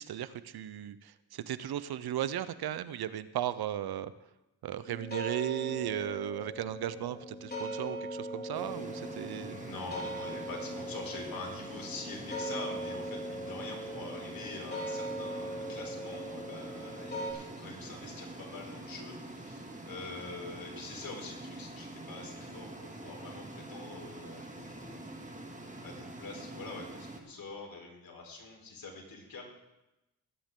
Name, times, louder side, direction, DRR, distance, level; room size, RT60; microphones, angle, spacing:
voice 1, 0.0-4.1 4.6-9.6, right 11 dB, 70° right, 15 dB, 0.7 m, -36 dB
sound 1, 4.8-17.3, equal, 25° left, 4.2 m, -40 dB
sound 2, 8.5-27.2, right 2 dB, 20° right, 2.2 m, -45 dB
voice 2, 9.5-22.7 23.0-25.1 25.8-29.4, left 3 dB, 60° left, 0 dB, 4.3 m, -45 dB
21.0 x 9.6 x 3.8 m, 0.96 s
cardioid pair, 65°, 39 cm